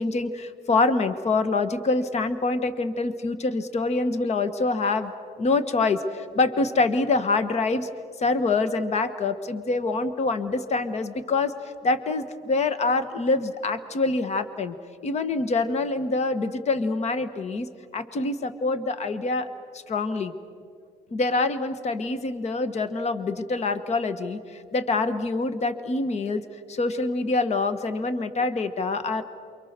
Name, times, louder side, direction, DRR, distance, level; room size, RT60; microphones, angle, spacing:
voice 1, 0.0-5.1 5.4-7.9 8.2-14.7 15.0-17.7 17.9-19.5 19.7-20.3 21.1-26.4 26.7-29.2, left 3 dB, 40° left, 11 dB, 1.4 m, -25 dB
28.5 x 24.5 x 6.8 m, 2.3 s
cardioid pair, 110°, 17 cm